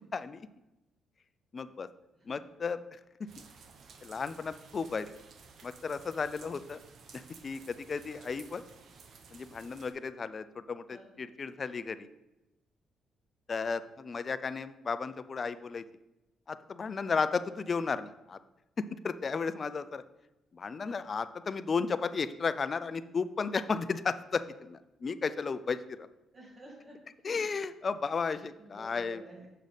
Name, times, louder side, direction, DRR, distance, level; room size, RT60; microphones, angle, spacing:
voice 1, 0.1-0.5 1.5-1.9 2.2-3.0 4.0-5.1 5.6-6.8 7.1-8.6 9.3-12.1 13.5-15.8 16.5-18.4 18.8-20.0 20.5-26.1 27.2-29.2, left 5 dB, 40° left, 13 dB, 0.4 m, -34 dB
sound 1, 3.3-9.9, right 5 dB, 65° right, 0.9 m, -54 dB
voice 2, 10.9-11.3 20.8-21.0 26.3-27.0 28.2-29.5, right 1 dB, 40° right, -2 dB, 2.1 m, -52 dB
6.6 x 6.3 x 4.1 m, 0.98 s
cardioid pair, 90°, 0 cm